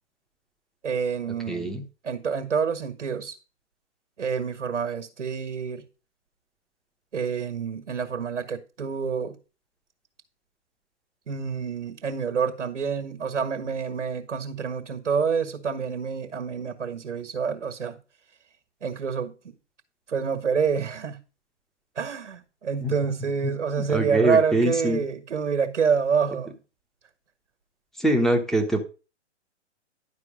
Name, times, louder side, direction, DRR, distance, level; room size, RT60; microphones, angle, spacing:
voice 1, 0.8-1.8 2.0-3.3 4.2-5.8 7.1-9.4 11.3-18.0 18.8-19.5 20.1-21.2 21.9-26.5, right 6 dB, 90° right, 1.6 m, -27 dB
voice 2, 1.5-1.8 22.8-22.9 23.4-23.5 23.8-25.0 28.0-28.8, right 1 dB, ahead, 0.9 m, -23 dB
11.0 x 4.8 x 5.1 m
hypercardioid pair, 135°, 35 cm